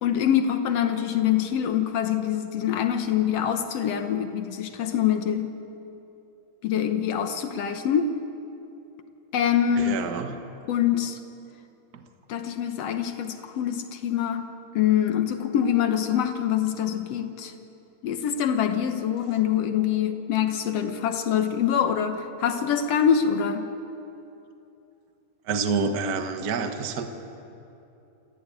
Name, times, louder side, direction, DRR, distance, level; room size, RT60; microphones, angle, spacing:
voice 1, 0.0-5.6 6.6-8.1 9.3-10.0 10.7-11.2 12.3-14.5 14.7-17.5 18.0-23.7, left 9 dB, 65° left, 7 dB, 1.7 m, -25 dB
voice 2, 9.8-10.3 11.9-12.0 25.5-27.1, right 5 dB, 60° right, 6 dB, 1.0 m, -27 dB
27.5 x 14.0 x 9.0 m, 2.8 s
omnidirectional pair, 3.9 m